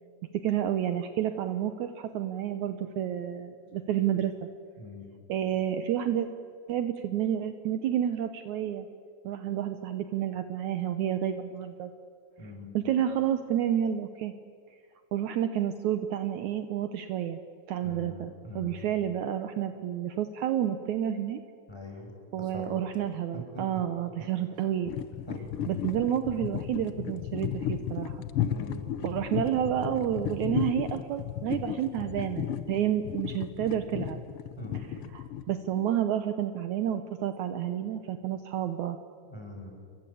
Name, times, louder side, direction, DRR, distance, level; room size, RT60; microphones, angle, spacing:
voice 1, 0.4-4.3 5.3-6.3 6.7-8.9 9.2-11.9 12.4-14.3 15.1-17.4 17.7-18.3 18.6-21.4 22.3-24.9 25.7-28.2 29.0-34.2 34.7-39.0, right 10 dB, 70° right, 9 dB, 2.2 m, -30 dB
voice 2, 4.8-5.1 12.4-12.7 17.8-18.9 21.7-22.1 22.4-22.8 23.3-23.8 24.2-24.3 25.3-25.6 28.4-28.8 34.5-34.9 39.3-39.7, left 1 dB, 5° left, 1 dB, 5.9 m, -42 dB
sound 1, 24.9-35.8, left 10 dB, 80° left, 1.2 m, -34 dB
29.5 x 23.5 x 8.6 m, 2.2 s
omnidirectional pair, 3.8 m